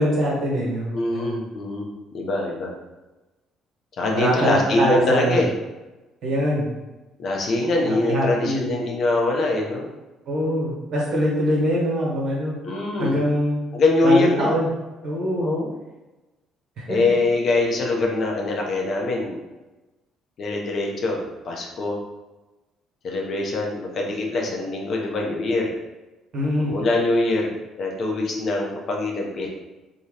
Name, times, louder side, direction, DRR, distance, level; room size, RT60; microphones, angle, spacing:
voice 1, 0.0-1.3 4.1-5.4 6.2-6.7 8.1-8.7 10.3-12.6 13.0-14.7 15.0-15.6 16.9-17.0 26.3-26.7, equal, 65° right, -4 dB, 1.0 m, -23 dB
voice 2, 0.9-2.7 4.0-5.5 7.2-9.9 12.6-13.2 13.7-14.6 15.4-15.8 16.9-19.4 20.4-22.0 23.0-25.7 26.6-29.5, left 2 dB, 55° left, 0 dB, 0.6 m, -23 dB
2.8 x 2.2 x 3.2 m, 1.1 s
hypercardioid pair, 60°, 0 cm